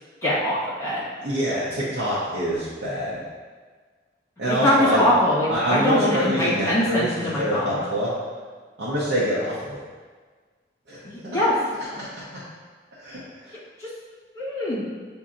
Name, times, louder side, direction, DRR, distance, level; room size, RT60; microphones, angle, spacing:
voice 1, 0.2-1.0 4.5-7.9 11.1-11.6 13.8-13.9 14.3-14.8, left 1 dB, 15° left, -9 dB, 1.3 m, -22 dB
voice 2, 1.2-3.2 4.4-5.0 5.5-7.1 7.4-8.1 8.8-9.8 10.9-11.0 11.3-11.4 12.0-12.4 13.0-13.5, equal, 70° right, -10 dB, 0.8 m, -26 dB
6.9 x 2.7 x 2.5 m, 1.5 s
head